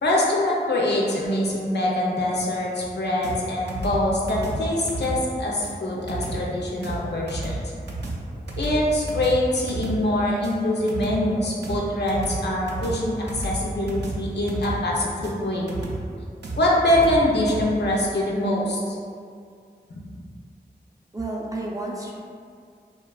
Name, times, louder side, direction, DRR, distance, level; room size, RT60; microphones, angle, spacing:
voice 1, 0.0-7.6 8.6-15.7 16.6-19.0 19.9-20.0, left 1 dB, 75° left, -4 dB, 0.5 m, -24 dB
sound 1, 3.2-17.6, right 2 dB, 85° right, 0.4 m, -32 dB
voice 2, 21.1-22.1, right 2 dB, 20° right, -3 dB, 0.4 m, -30 dB
2.7 x 2.2 x 2.3 m, 2.2 s
wide cardioid pair, 55°, 17 cm